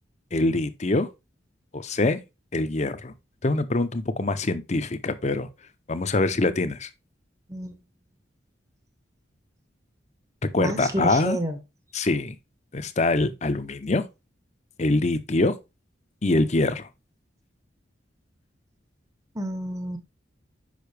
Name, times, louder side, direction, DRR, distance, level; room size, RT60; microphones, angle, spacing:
voice 1, 0.3-1.1 1.7-2.2 2.5-3.1 3.4-5.5 5.9-6.9 10.5-11.4 11.9-12.3 12.7-14.0 14.8-15.5 16.2-16.9, left 2 dB, 35° left, 0.7 m, -24 dB
voice 2, 7.5-7.8 10.6-11.6 19.3-20.0, right 1 dB, 15° right, 0.9 m, -29 dB
6.6 x 5.6 x 3.3 m
head